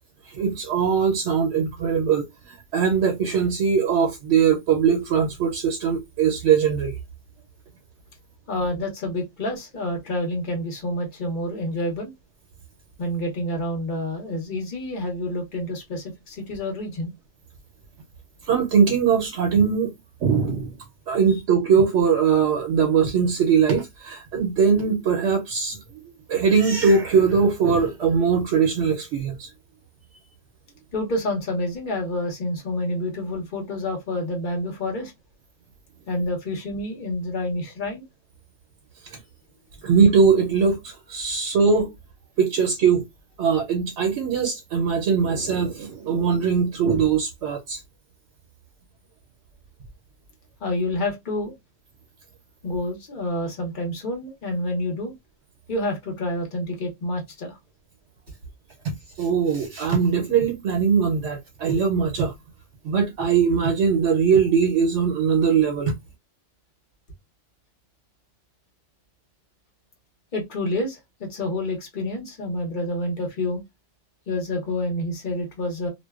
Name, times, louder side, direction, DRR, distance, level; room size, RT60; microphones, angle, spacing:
voice 1, 0.3-7.0 18.5-19.9 20.2-20.8 21.1-29.5 39.1-39.2 39.8-41.9 42.4-43.0 43.4-47.8 58.8-62.3 62.8-65.9, right 6 dB, 80° right, 0.9 m, -21 dB
voice 2, 8.5-12.1 13.0-17.1 30.9-35.1 36.1-38.0 50.6-51.5 52.6-55.1 55.7-57.6 70.3-73.6 74.3-75.9, left 1 dB, 45° left, 1.0 m, -28 dB
2.5 x 2.1 x 2.3 m
omnidirectional pair, 1.2 m